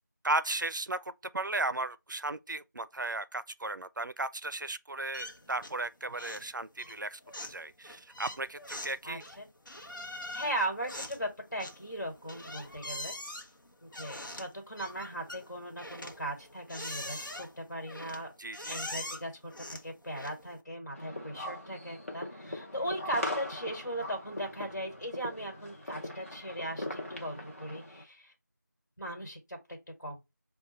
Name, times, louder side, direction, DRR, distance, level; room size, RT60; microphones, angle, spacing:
voice 1, 0.2-9.2 18.4-18.8, right 2 dB, 75° right, 0.4 m, -35 dB
sound 1, 5.1-5.9 6.1-6.5 6.8-20.6, left 1 dB, 85° left, 0.8 m, -43 dB
voice 2, 9.0-9.5 10.3-13.1 13.8-18.3 18.7-28.3 29.0-30.2, right 1 dB, 65° left, 1.4 m, -38 dB
sound 2, 20.9-28.0, left 1 dB, 45° left, 0.8 m, -40 dB
5.4 x 2.2 x 3.0 m
figure-of-eight pair, 180°, 10 cm